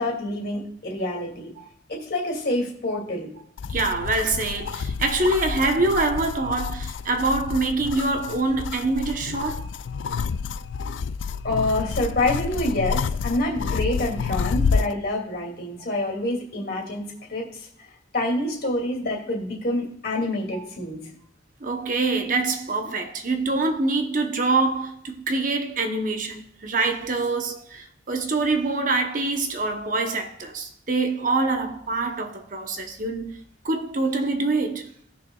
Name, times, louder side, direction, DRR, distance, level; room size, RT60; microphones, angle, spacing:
voice 1, 0.0-1.5 1.9-3.3 11.4-21.0, left 1 dB, 50° left, 2.5 m, -27 dB
sound 1, 3.6-14.9, left 5 dB, 75° left, 0.3 m, -29 dB
voice 2, 3.7-9.7 20.5-20.6 21.6-33.4 33.6-34.9, right 3 dB, 45° right, 0.9 m, -25 dB
17.5 x 6.5 x 2.3 m
head